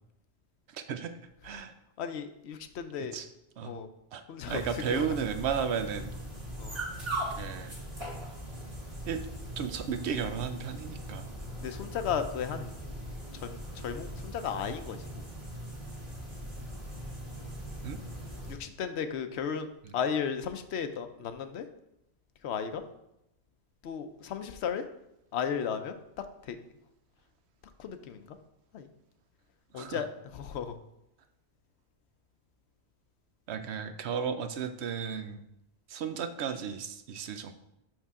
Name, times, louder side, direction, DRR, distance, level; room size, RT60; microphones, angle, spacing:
voice 1, 0.7-1.1 1.4-1.7 3.0-3.3 3.6-3.7 4.1-6.1 7.4-7.7 9.0-9.2 9.6-11.3 17.8-18.0 19.8-20.0 29.7-30.1 33.5-35.4 35.9-37.5, right 7 dB, 85° right, 9 dB, 0.9 m, -34 dB
voice 2, 2.0-3.2 3.6-3.9 4.3-4.6 4.9-5.1 6.6-6.8 11.6-12.7 13.4-15.3 18.5-19.7 19.9-21.7 22.4-22.8 23.8-24.8 25.3-26.0 26.5-26.6 27.8-28.3 28.7-28.9 29.7-30.1 30.3-30.8, left 7 dB, 85° left, 9 dB, 0.9 m, -34 dB
sound 1, 4.5-18.5, right 1 dB, 25° right, 1.5 m, -40 dB
6.3 x 5.6 x 3.6 m, 0.84 s
omnidirectional pair, 1.1 m